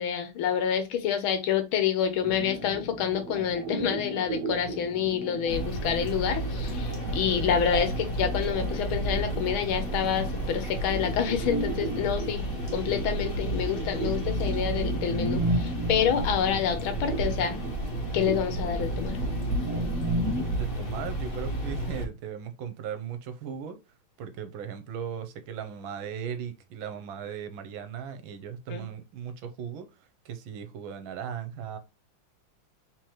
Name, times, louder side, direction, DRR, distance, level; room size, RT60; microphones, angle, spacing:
voice 1, 0.0-12.5 12.7-17.6 18.1-19.2 28.7-28.8, left 8 dB, 85° left, 1.7 m, -28 dB
sound 1, 2.2-20.6, right 1 dB, 45° right, 1.2 m, -35 dB
sound 2, 5.5-22.1, right 1 dB, 45° left, 1.6 m, -32 dB
voice 2, 20.5-23.8 24.2-29.9 30.2-31.8, right 8 dB, 75° right, 1.6 m, -37 dB
4.6 x 3.8 x 3.1 m
omnidirectional pair, 2.2 m